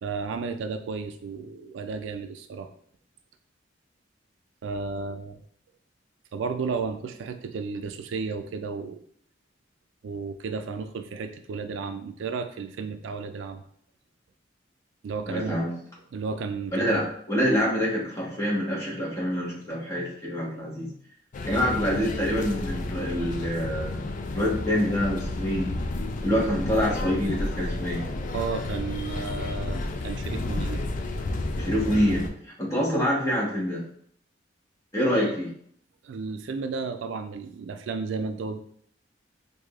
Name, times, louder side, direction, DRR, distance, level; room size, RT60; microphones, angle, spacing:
voice 1, 0.0-2.7 4.6-5.4 6.3-9.0 10.0-13.6 15.0-15.6 16.1-17.0 28.3-30.8 35.1-35.3 36.0-38.6, right 4 dB, 80° right, 8 dB, 0.3 m, -33 dB
voice 2, 15.3-15.7 16.7-20.9 21.5-25.7 26.2-28.0 31.6-32.2 32.6-33.8 34.9-35.5, equal, 15° left, -5 dB, 1.2 m, -26 dB
sound 1, 21.3-32.3, left 2 dB, 45° left, 0.3 m, -31 dB
4.6 x 2.6 x 2.4 m, 0.63 s
head